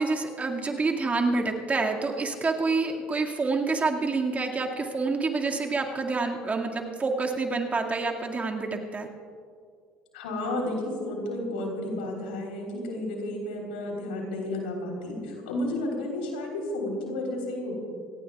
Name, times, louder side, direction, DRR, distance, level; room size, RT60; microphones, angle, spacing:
voice 1, 0.0-9.1, right 3 dB, 25° right, 1 dB, 2.1 m, -27 dB
voice 2, 10.1-17.8, left 1 dB, 85° left, 1 dB, 3.7 m, -32 dB
25.5 x 18.5 x 2.4 m, 2.2 s
hypercardioid pair, 70°, 5 cm